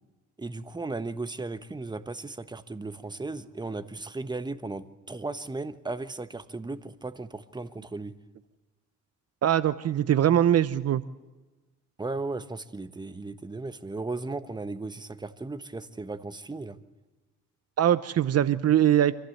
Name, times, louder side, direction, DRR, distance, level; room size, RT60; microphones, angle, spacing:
voice 1, 0.4-8.1 12.0-16.8, right 3 dB, 15° right, 12 dB, 1.2 m, -36 dB
voice 2, 9.4-11.0 17.8-19.1, right 11 dB, 55° right, 15 dB, 0.8 m, -22 dB
25.5 x 15.0 x 7.9 m, 1.2 s
cardioid pair, 90°, 30 cm